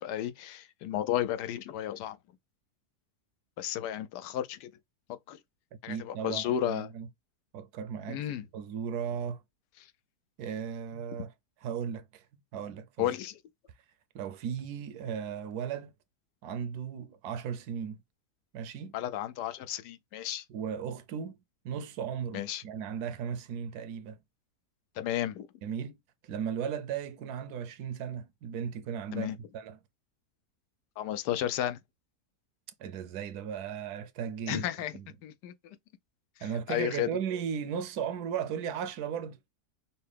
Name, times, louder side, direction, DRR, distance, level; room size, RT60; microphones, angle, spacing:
voice 1, 0.0-2.2 3.6-4.7 5.3-5.4 5.8-6.9 8.1-8.5 13.0-13.4 18.9-20.4 22.3-22.6 25.0-25.5 29.1-29.4 31.0-31.8 34.5-34.9 35.2-35.8 36.7-37.1, left 11 dB, 85° left, 1.2 m, -33 dB
voice 2, 5.9-7.1 7.5-8.2 8.5-9.4 10.4-11.3 11.6-12.2 12.5-13.1 14.1-15.9 16.4-18.0 18.5-18.9 20.5-21.4 21.6-24.2 25.6-26.0 26.2-29.3 29.5-29.8 32.8-34.7 34.9-35.1 36.4-39.4, right 8 dB, 75° right, 1.1 m, -36 dB
5.6 x 2.2 x 3.3 m
omnidirectional pair, 1.7 m